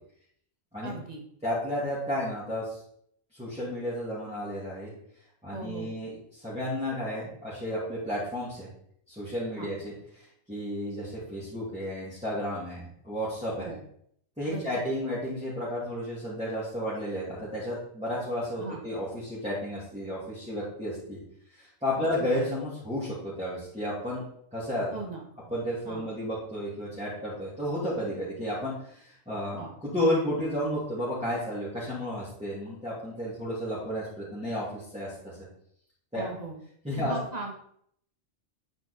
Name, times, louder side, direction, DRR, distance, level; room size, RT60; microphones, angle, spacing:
voice 1, 0.8-1.2 5.5-5.9 9.6-9.7 13.6-13.8 14.5-14.7 18.6-18.8 22.0-22.1 24.9-25.2 25.9-26.1 29.5-29.7 36.1-36.6 37.0-37.5, right 2 dB, 30° right, 0 dB, 1.5 m, -38 dB
voice 2, 1.4-2.8 3.3-4.9 5.4-8.7 9.1-13.8 14.4-21.2 21.5-24.2 24.5-25.0 25.5-35.3 36.1-36.3 36.8-37.1, equal, 5° right, -10 dB, 2.5 m, -32 dB
8.8 x 4.5 x 4.2 m, 0.68 s
omnidirectional pair, 1.3 m